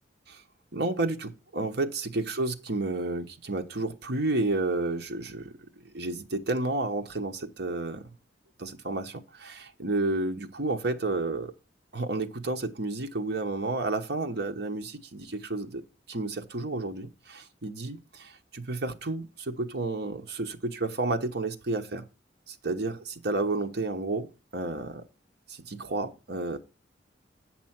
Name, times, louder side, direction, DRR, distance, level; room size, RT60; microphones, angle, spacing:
voice 1, 0.7-8.1 8.6-11.5 11.9-15.8 16.1-22.1 22.5-25.0 25.5-26.6, right 2 dB, 60° right, 1.1 m, -31 dB
8.7 x 6.0 x 5.9 m
head